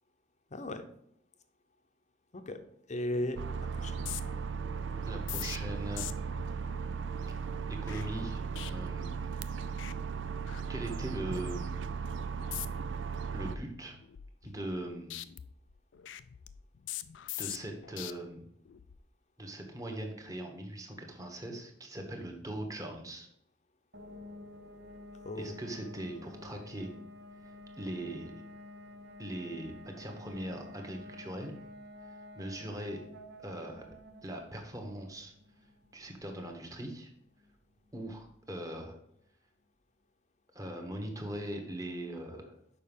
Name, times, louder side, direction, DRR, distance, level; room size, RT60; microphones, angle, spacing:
voice 1, 0.5-0.9 2.3-2.6 2.9-4.1 25.2-25.6, left 1 dB, 40° left, 8 dB, 0.7 m, -36 dB
sound 1, 3.4-13.6, right 5 dB, 80° right, 0.4 m, -37 dB
sound 2, 3.9-9.4 9.7-9.9 10.2-11.2 11.6-11.8 12.4-12.9 13.3-14.8 15.1-18.1 18.7-19.0, left 13 dB, 85° left, 0.4 m, -45 dB
voice 2, 5.1-6.0 7.8-8.4 8.7-9.7 10.7-11.6 13.3-14.0 14.4-15.1 17.4-18.5 19.4-23.3 25.4-26.9 27.8-28.3 29.2-31.5 32.3-33.0 33.4-33.8 34.2-35.3 35.9-37.1 37.9-39.0 40.5-42.5, right 1 dB, 20° right, 2 dB, 1.3 m, -40 dB
sound 3, 23.9-38.5, left 1 dB, 60° right, 0.8 m, -51 dB
6.6 x 5.2 x 5.3 m, 0.73 s
head